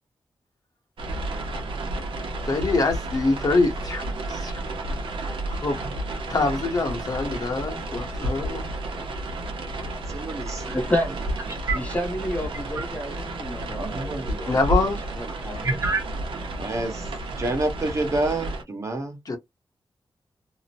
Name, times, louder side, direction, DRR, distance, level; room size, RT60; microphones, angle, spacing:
sound 1, 1.0-18.6, right 1 dB, 80° right, 0.8 m, -31 dB
voice 1, 2.4-4.6 5.5-5.8 6.3-8.6 14.5-15.0 19.3-19.4, left 3 dB, 45° left, 0.9 m, -25 dB
voice 2, 9.9-10.8 11.7-11.8 12.7-12.8 13.2-13.4 13.7-14.6 15.4-16.1 16.6-17.1 17.4-19.2, right 2 dB, 35° right, 0.8 m, -28 dB
voice 3, 10.7-11.1 11.7-14.6 15.2-15.7, left 1 dB, 15° left, 0.6 m, -30 dB
2.8 x 2.0 x 2.7 m
wide cardioid pair, 175°, 9 cm